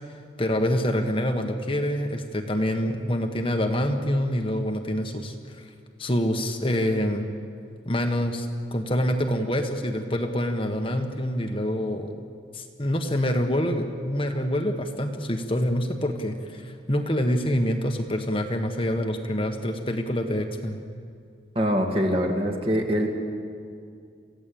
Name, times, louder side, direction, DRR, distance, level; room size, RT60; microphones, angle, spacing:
voice 1, 0.4-5.6 6.0-7.3 7.9-12.1 12.5-20.8, equal, 30° left, 4 dB, 1.4 m, -26 dB
voice 2, 21.6-23.1, equal, 30° right, 2 dB, 2.3 m, -23 dB
28.0 x 16.0 x 8.7 m, 2.3 s
head